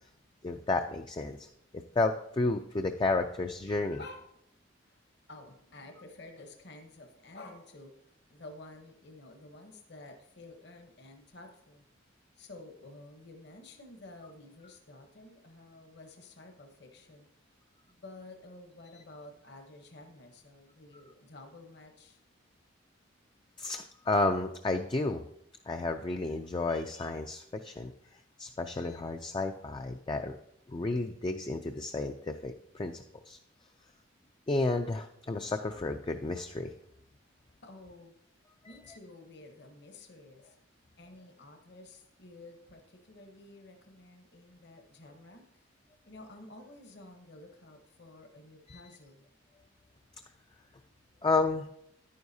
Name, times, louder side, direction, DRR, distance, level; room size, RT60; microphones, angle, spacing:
voice 1, 0.4-1.5 2.0-4.0 23.6-25.2 25.7-30.4 30.7-33.4 34.5-36.7 38.6-38.8 48.7-48.8 51.2-51.7, left 3 dB, 25° left, 6 dB, 0.3 m, -32 dB
voice 2, 5.3-7.9 8.3-11.8 12.4-17.3 17.9-22.2 37.6-38.1 38.7-40.6 41.0-45.7 46.0-49.3, left 2 dB, 55° left, 5 dB, 1.0 m, -51 dB
10.0 x 9.4 x 2.7 m, 0.77 s
head